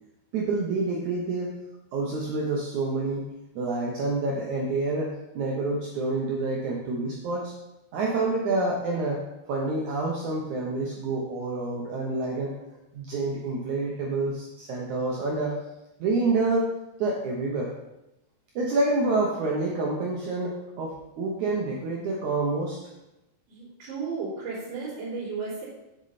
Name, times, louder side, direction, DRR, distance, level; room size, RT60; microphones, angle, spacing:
voice 1, 0.3-1.5 1.9-3.2 3.6-7.5 7.9-9.2 9.5-12.5 12.9-15.5 16.0-16.7 17.0-17.7 18.6-22.8, right 3 dB, 70° right, -2 dB, 1.8 m, -28 dB
voice 2, 23.5-25.6, right 4 dB, 40° right, -10 dB, 4.2 m, -34 dB
7.9 x 7.3 x 4.1 m, 0.93 s
omnidirectional pair, 4.6 m